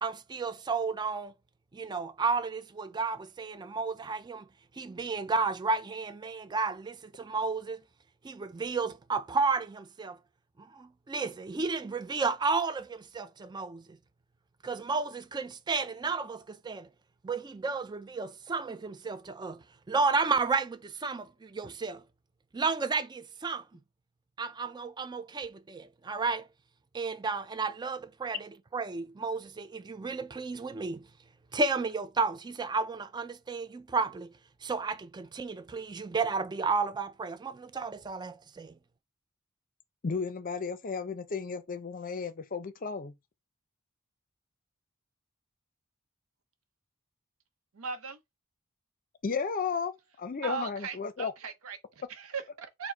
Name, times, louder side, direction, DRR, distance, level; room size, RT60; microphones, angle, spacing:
voice 1, 0.0-1.3 1.7-4.5 4.8-7.8 8.2-10.2 10.6-13.8 14.6-16.9 17.2-19.6 19.9-22.0 22.5-23.6 24.4-26.5 26.9-31.0 31.5-34.3 34.6-38.7, right 4 dB, 20° right, 0.4 m, -32 dB
voice 2, 40.0-43.2 49.2-49.9 50.2-51.3, left 5 dB, 40° left, 0.6 m, -33 dB
voice 3, 47.7-48.2 50.4-52.9, right 5 dB, 80° right, 0.7 m, -38 dB
4.7 x 2.1 x 4.3 m
head